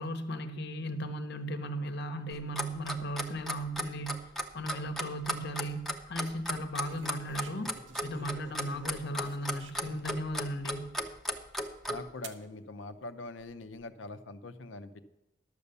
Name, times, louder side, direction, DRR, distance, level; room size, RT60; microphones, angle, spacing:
voice 1, 0.0-7.7 8.0-10.9, equal, 65° left, 9 dB, 1.0 m, -36 dB
Clock, 2.3-12.0, equal, ahead, 0.7 m, -35 dB
sound 1, 5.1-5.5 6.8-10.1 10.7-10.8 12.2-12.5 13.3-13.8, right 3 dB, 75° right, 0.8 m, -50 dB
voice 2, 11.9-15.0, left 2 dB, 85° left, 10 dB, 0.7 m, -43 dB
11.5 x 6.8 x 6.8 m, 0.98 s
head